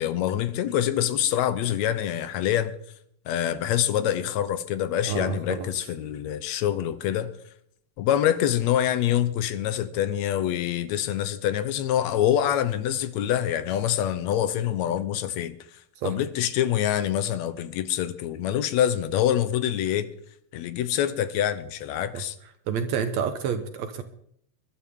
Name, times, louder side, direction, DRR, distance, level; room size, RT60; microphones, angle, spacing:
voice 1, 0.0-2.8 3.3-7.3 8.0-15.6 16.0-20.1 20.5-22.4, left 11 dB, 70° left, 13 dB, 1.8 m, -25 dB
voice 2, 5.1-5.8 16.0-16.1 22.1-22.2 22.7-24.0, right 7 dB, 70° right, 9 dB, 2.0 m, -29 dB
21.0 x 12.0 x 3.7 m, 0.68 s
omnidirectional pair, 3.8 m